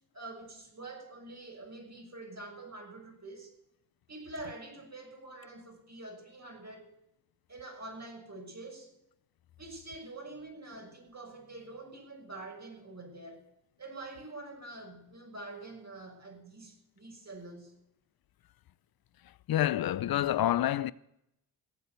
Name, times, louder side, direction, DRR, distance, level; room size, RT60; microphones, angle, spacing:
voice 1, 0.1-3.5 4.1-6.9 7.5-8.9 9.6-13.4 13.8-17.8, right 2 dB, 40° right, 6.3 m, -46 dB
voice 2, 19.5-20.9, left 12 dB, 55° left, 0.7 m, -27 dB
18.0 x 8.1 x 8.2 m
hypercardioid pair, 45°, 43 cm